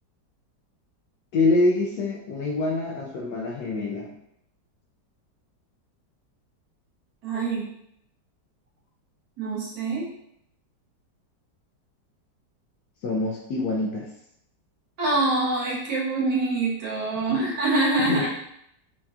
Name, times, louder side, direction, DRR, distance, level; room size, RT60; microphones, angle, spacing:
voice 1, 1.3-4.1 13.0-14.1 17.3-17.5 18.0-18.3, left 2 dB, 75° left, -2 dB, 1.2 m, -25 dB
voice 2, 7.2-7.7 9.4-10.1 15.0-18.3, right 2 dB, 70° right, -6 dB, 1.8 m, -25 dB
4.5 x 2.8 x 2.3 m, 0.75 s
omnidirectional pair, 1.9 m